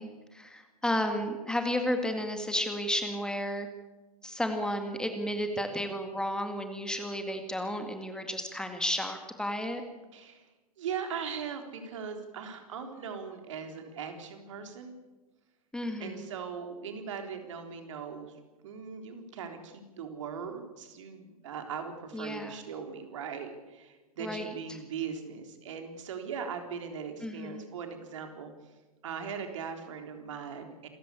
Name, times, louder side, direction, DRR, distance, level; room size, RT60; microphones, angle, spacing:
voice 1, 0.0-3.7 4.2-9.8 15.7-16.3 22.1-22.6 24.2-24.8 27.2-27.7, left 1 dB, 5° left, 6 dB, 2.2 m, -33 dB
voice 2, 10.1-10.5 10.8-14.9 16.0-18.3 18.6-28.5 29.0-30.9, right 6 dB, 55° right, 5 dB, 3.8 m, -39 dB
27.5 x 15.0 x 8.6 m, 1.2 s
figure-of-eight pair, 105°, 19 cm